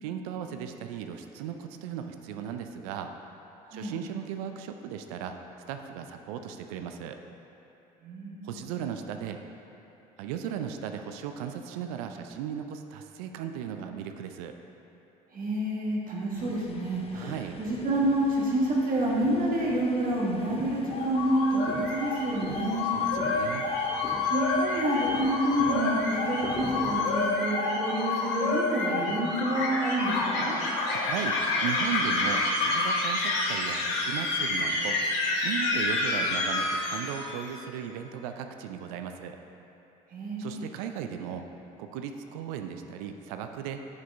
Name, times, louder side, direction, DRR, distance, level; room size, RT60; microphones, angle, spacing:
voice 1, 0.0-3.1 3.7-5.4 5.7-7.2 8.4-9.4 10.2-14.5 17.1-17.6 22.8-23.7 30.9-35.0 35.4-39.4 40.4-41.5 41.8-43.9, right 8 dB, 80° right, 7 dB, 0.4 m, -36 dB
voice 2, 8.0-8.5 15.3-23.2 24.3-30.5 40.1-40.7, right 1 dB, 50° right, -5 dB, 1.5 m, -28 dB
sound 1, 16.4-27.3, left 4 dB, 30° left, 0.6 m, -43 dB
sound 2, 20.9-37.4, left 3 dB, 75° left, 1.0 m, -28 dB
9.4 x 4.9 x 3.4 m, 2.9 s
hypercardioid pair, 60°, 19 cm